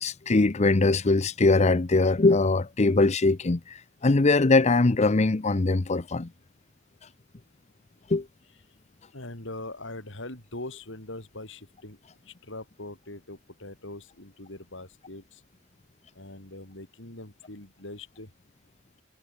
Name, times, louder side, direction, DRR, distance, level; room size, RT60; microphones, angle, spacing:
voice 1, 0.0-6.3 8.1-8.2, left 3 dB, 35° left, 0.7 m, -22 dB
voice 2, 9.1-12.0 12.3-15.4 16.2-18.3, left 2 dB, 70° left, 5.5 m, -42 dB
head